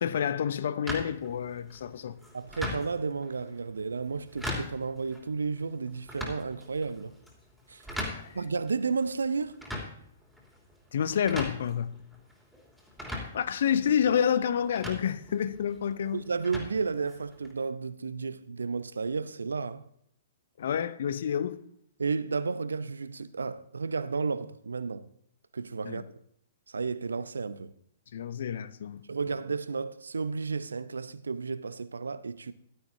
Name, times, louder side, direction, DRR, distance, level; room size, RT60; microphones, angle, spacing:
voice 1, 0.0-2.2 8.1-8.4 10.9-11.9 13.3-16.2 20.6-21.6 25.8-26.0 28.1-29.0, left 8 dB, 55° left, 0.8 m, -29 dB
sound 1, 0.9-17.5, left 1 dB, ahead, 3.3 m, -41 dB
voice 2, 2.3-7.1 7.7-7.8 8.3-9.6 16.1-19.8 22.0-25.1 25.5-26.0 26.7-27.7 29.1-32.5, right 4 dB, 75° right, 0.8 m, -32 dB
16.0 x 12.0 x 2.8 m
figure-of-eight pair, 115°, 0 cm